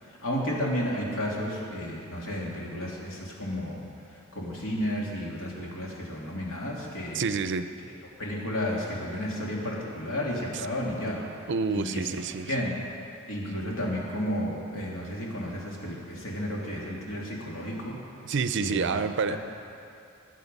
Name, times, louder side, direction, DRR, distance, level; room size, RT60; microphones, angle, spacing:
voice 1, 0.0-3.8 4.1-7.3 8.2-12.1 12.5-12.8 13.3-18.0 18.6-19.0, equal, 70° left, -3 dB, 2.8 m, -32 dB
voice 2, 7.1-7.7 11.5-12.5 18.2-19.4, right 5 dB, 60° right, 11 dB, 0.5 m, -28 dB
20.0 x 7.6 x 5.4 m, 2.6 s
head